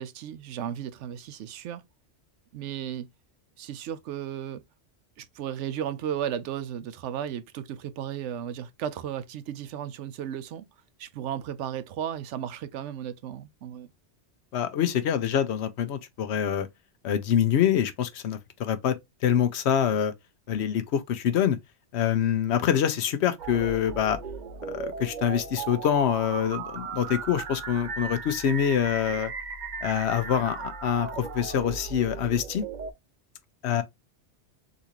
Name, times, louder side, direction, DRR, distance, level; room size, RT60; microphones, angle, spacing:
voice 1, 0.0-1.8 2.5-3.1 3.6-4.6 5.2-10.6 11.0-13.9, right 9 dB, 80° right, 0.9 m, -34 dB
voice 2, 14.5-16.7 17.0-19.0 19.2-20.1 20.5-21.6 21.9-24.2 24.7-29.3 29.8-32.6 33.6-33.8, left 9 dB, 70° left, 0.9 m, -25 dB
sound 1, 23.4-32.9, right 5 dB, 50° right, 0.7 m, -37 dB
4.0 x 2.5 x 2.8 m
omnidirectional pair, 1.2 m